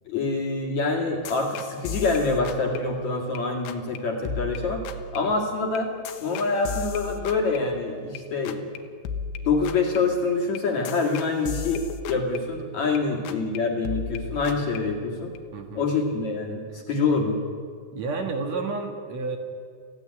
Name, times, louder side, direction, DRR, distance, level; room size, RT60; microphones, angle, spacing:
voice 1, 0.1-4.8 5.1-5.9 6.2-8.7 9.4-15.3 15.7-17.4, left 3 dB, 50° left, 0 dB, 2.9 m, -26 dB
sound 1, 1.3-3.4 3.7-4.0 4.3-8.2 8.5-8.8 9.1-13.0 13.3-13.6 13.9-15.4, left 4 dB, 80° left, 3.3 m, -36 dB
voice 2, 13.0-13.4 15.5-15.9 17.9-19.4, right 4 dB, 55° right, 5 dB, 2.1 m, -31 dB
23.5 x 16.0 x 9.7 m, 2.2 s
omnidirectional pair, 5.1 m